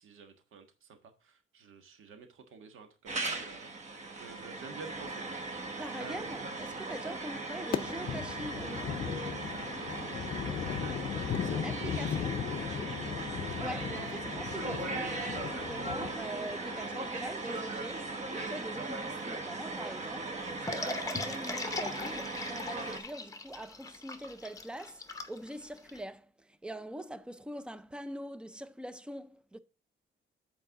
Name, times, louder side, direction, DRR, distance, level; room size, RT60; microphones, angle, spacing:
voice 1, 0.0-6.4 10.4-10.8 11.4-13.6, right 5 dB, 80° right, 1.5 m, -51 dB
sound 1, 3.1-23.0, right 3 dB, 35° right, 1.0 m, -38 dB
voice 2, 5.8-8.9 11.2-12.4 13.6-29.6, right 1 dB, 5° right, 0.4 m, -43 dB
sound 2, 7.7-17.1, left 8 dB, 45° left, 0.5 m, -37 dB
sound 3, 20.7-26.0, left 3 dB, 15° left, 0.8 m, -39 dB
8.3 x 4.7 x 4.7 m
wide cardioid pair, 180°, 20 cm